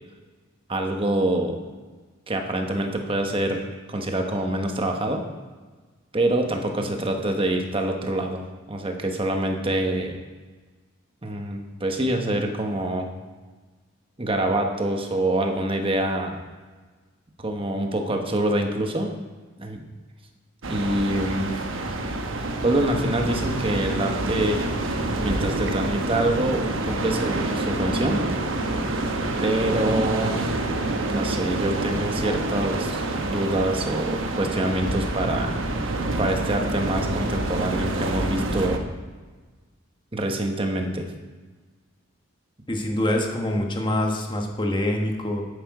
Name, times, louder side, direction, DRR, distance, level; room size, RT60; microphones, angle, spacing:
voice 1, 0.7-1.6 2.3-5.2 6.1-10.1 11.2-13.1 14.2-16.4 17.4-19.1 19.6-19.8 20.7-21.6 22.6-24.7 25.2-28.4 29.4-30.4 31.1-33.0 33.3-35.6 36.2-38.8 40.1-41.1, right 1 dB, 25° right, 4 dB, 1.0 m, -25 dB
sound 1, 20.6-38.8, right 2 dB, 70° right, 1.0 m, -27 dB
voice 2, 42.7-45.4, left 1 dB, 25° left, 2 dB, 1.2 m, -25 dB
10.0 x 8.4 x 4.8 m, 1.4 s
head